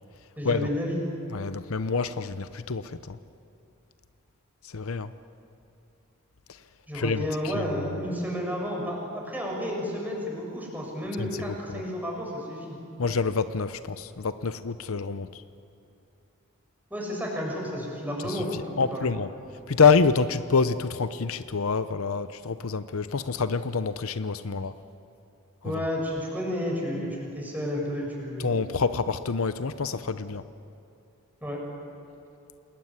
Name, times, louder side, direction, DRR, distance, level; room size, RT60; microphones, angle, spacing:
voice 1, 0.4-1.1 6.9-12.8 16.9-19.1 25.6-28.5 31.4-31.6, equal, 10° right, -1 dB, 7.1 m, -31 dB
voice 2, 1.3-3.2 4.6-5.1 6.5-6.6 6.9-7.7 11.2-11.8 13.0-15.4 18.2-19.3 19.7-24.7 25.7-25.8 28.4-30.5, left 5 dB, 70° left, 13 dB, 0.8 m, -27 dB
28.0 x 20.5 x 9.8 m, 2.7 s
head